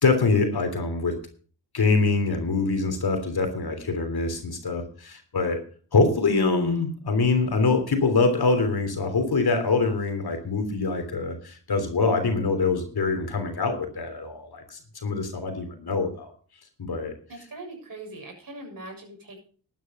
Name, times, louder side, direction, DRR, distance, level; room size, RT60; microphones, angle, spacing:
voice 1, 0.0-1.2 1.7-5.6 5.9-16.3 16.8-17.1, left 3 dB, 55° left, 7 dB, 3.2 m, -24 dB
voice 2, 17.3-19.4, right 2 dB, 50° right, 2 dB, 7.1 m, -41 dB
12.0 x 9.3 x 5.3 m, 0.42 s
cardioid pair, 50°, 44 cm